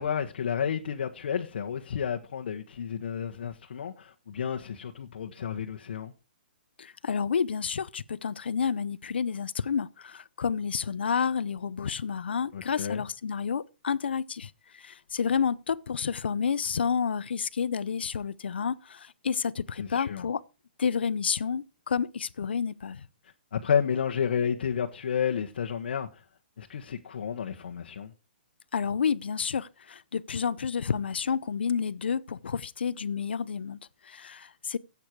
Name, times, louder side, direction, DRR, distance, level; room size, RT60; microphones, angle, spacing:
voice 1, 0.0-6.1 12.5-13.0 19.8-20.3 23.5-26.2 26.6-28.1, left 7 dB, 70° left, 1.3 m, -31 dB
voice 2, 6.8-20.4 20.8-23.0 28.7-34.8, left 6 dB, 90° left, 0.7 m, -30 dB
13.5 x 8.4 x 4.6 m
hypercardioid pair, 155°, 6 cm